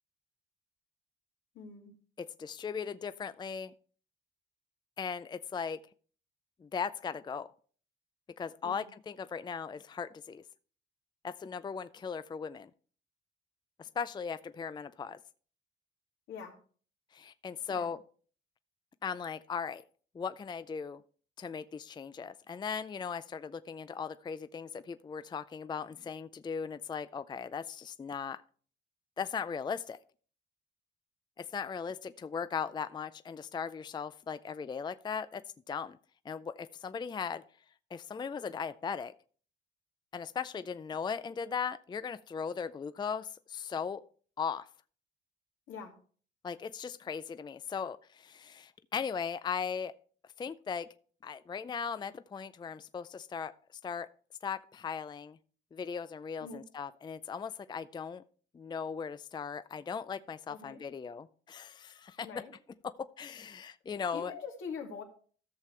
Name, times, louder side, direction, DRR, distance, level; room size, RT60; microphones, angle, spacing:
voice 1, 1.5-1.9 8.6-8.9 16.3-16.5 17.7-17.9 45.7-45.9 56.4-56.6 60.5-60.8 62.2-62.5 64.1-65.0, left 5 dB, 80° left, 1 dB, 2.5 m, -43 dB
voice 2, 2.2-3.7 5.0-5.8 6.6-7.5 8.4-10.4 11.2-12.7 13.8-15.2 17.1-18.0 19.0-19.8 20.1-21.0 21.4-28.4 29.2-30.0 31.4-36.0 36.3-37.4 37.9-39.1 40.1-44.0 44.4-44.7 46.4-49.9 50.4-50.9 51.2-53.5 53.8-54.1 54.4-55.4 55.7-58.2 58.5-62.3 62.8-64.3, left 6 dB, 20° left, 13 dB, 0.4 m, -38 dB
14.0 x 6.6 x 3.2 m, 0.43 s
cardioid pair, 90°, 20 cm